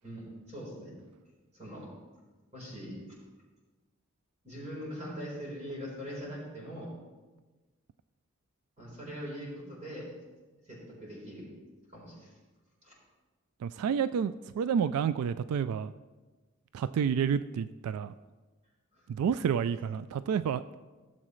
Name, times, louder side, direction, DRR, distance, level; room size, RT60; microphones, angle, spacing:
voice 1, 0.0-0.9 1.5-1.9 2.5-3.0 4.4-6.9 8.8-10.1 10.7-11.5 11.9-12.3 12.8-12.9 18.9-19.0, equal, 30° right, -4 dB, 3.9 m, -42 dB
voice 2, 13.6-15.9 16.7-18.1 19.1-20.6, right 7 dB, 90° right, 15 dB, 0.3 m, -29 dB
16.0 x 7.5 x 3.2 m, 1.3 s
head